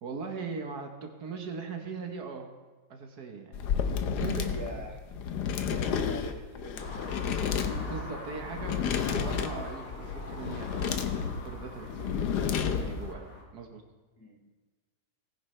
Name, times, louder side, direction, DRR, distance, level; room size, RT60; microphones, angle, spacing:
voice 1, 0.0-2.5 2.9-3.7 4.2-4.8 5.4-5.6 7.6-12.2 12.7-13.8, right 5 dB, 60° right, 3 dB, 1.6 m, -40 dB
sound 1, 3.5-13.1, left 7 dB, 70° left, 1.3 m, -31 dB
voice 2, 4.2-5.0 5.6-7.4 14.2-14.5, left 1 dB, 10° left, 0 dB, 1.1 m, -44 dB
sound 2, 6.8-13.4, left 2 dB, 50° left, 2.4 m, -44 dB
19.0 x 10.0 x 3.3 m, 1.3 s
omnidirectional pair, 2.0 m